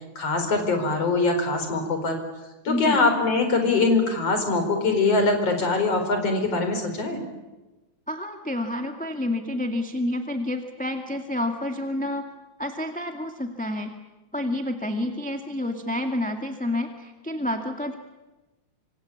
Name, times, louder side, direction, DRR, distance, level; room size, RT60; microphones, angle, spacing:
voice 1, 0.2-2.2 2.7-7.2, left 3 dB, 55° left, 6 dB, 5.6 m, -23 dB
voice 2, 2.7-3.0 8.1-12.2 12.6-13.9 14.3-18.0, left 1 dB, 5° left, 4 dB, 1.3 m, -29 dB
26.5 x 26.5 x 8.7 m, 1.1 s
omnidirectional pair, 3.4 m